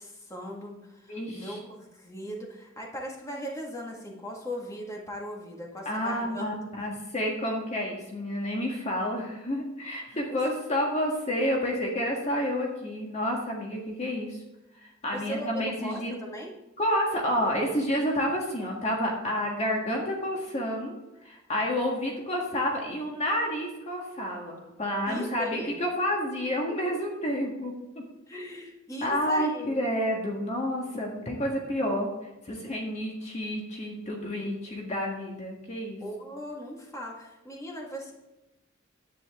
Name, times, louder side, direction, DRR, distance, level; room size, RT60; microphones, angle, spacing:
voice 1, 0.0-6.5 10.3-10.4 15.1-16.5 25.1-25.7 28.3-29.8 36.0-38.1, equal, 15° left, -1 dB, 1.8 m, -38 dB
voice 2, 1.1-1.6 5.8-14.4 14.7-16.2 16.8-21.0 21.2-28.0 28.3-28.4 29.0-36.0, equal, 35° left, -1 dB, 1.7 m, -30 dB
10.5 x 9.1 x 3.7 m, 0.98 s
head